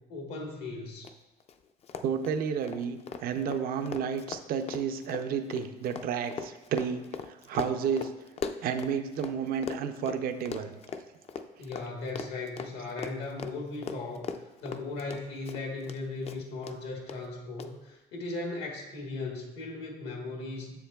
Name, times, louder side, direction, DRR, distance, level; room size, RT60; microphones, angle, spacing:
voice 1, 0.1-1.1 11.6-20.7, left 3 dB, 80° left, 1 dB, 1.3 m, -37 dB
Run, 1.0-1.1 1.4-1.5 1.8-9.3 9.6-16.0 16.3-16.8 17.1-17.2 17.6-17.7, left 6 dB, 40° left, 0.4 m, -39 dB
voice 2, 2.0-8.1 8.6-10.7, right 7 dB, 60° right, 8 dB, 0.5 m, -31 dB
7.2 x 7.0 x 2.3 m, 1.0 s
cardioid pair, 110°, 17 cm